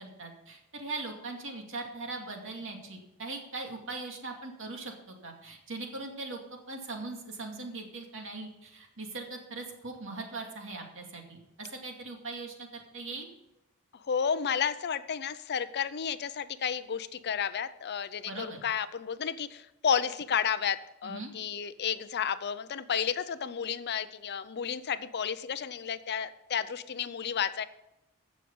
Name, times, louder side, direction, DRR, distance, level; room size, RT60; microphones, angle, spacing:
voice 1, 0.0-13.3 18.2-18.7 21.0-21.3, right 3 dB, 60° right, 2 dB, 2.3 m, -40 dB
voice 2, 14.0-27.6, left 7 dB, 50° left, 14 dB, 0.5 m, -32 dB
15.5 x 6.4 x 5.4 m, 0.88 s
head